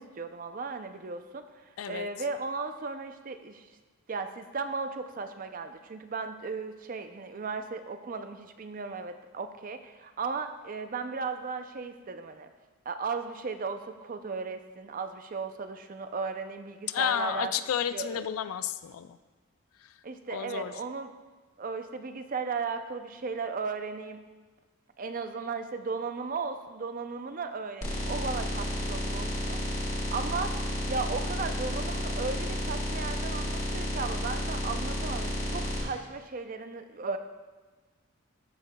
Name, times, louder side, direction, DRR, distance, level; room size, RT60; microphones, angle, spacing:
voice 1, 0.0-3.7 4.1-12.5 12.9-17.5 17.9-18.2 20.0-21.1 21.6-24.2 25.0-30.6 30.9-37.2, right 4 dB, 40° right, 8 dB, 0.4 m, -36 dB
voice 2, 1.8-2.1 16.9-19.2 19.8-19.9 20.3-20.7, left 9 dB, 80° left, 13 dB, 0.4 m, -31 dB
sound 1, 27.8-35.8, equal, 30° left, 1.7 m, -32 dB
13.0 x 6.5 x 2.3 m, 1.3 s
head